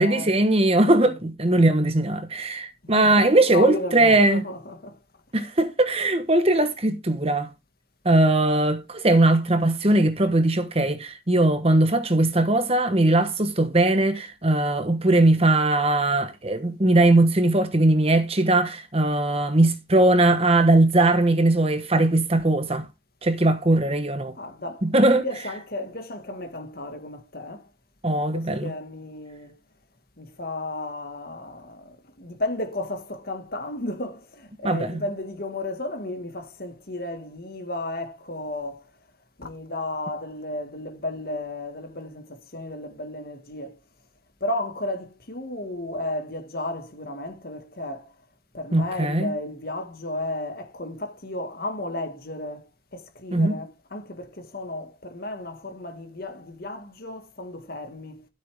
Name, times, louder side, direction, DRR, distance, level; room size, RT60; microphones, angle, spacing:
voice 1, 0.0-4.4 5.3-7.5 8.0-22.9 23.2-24.3 24.8-25.2 28.0-28.7 34.6-35.0 48.7-49.3 53.3-53.5, right 2 dB, 30° right, 1.2 m, -20 dB
voice 2, 2.8-5.0 24.4-27.7 28.2-29.6 30.2-38.9 39.4-43.8 44.4-48.1 48.5-58.3, left 1 dB, 50° left, 1.9 m, -33 dB
13.0 x 7.9 x 3.6 m
head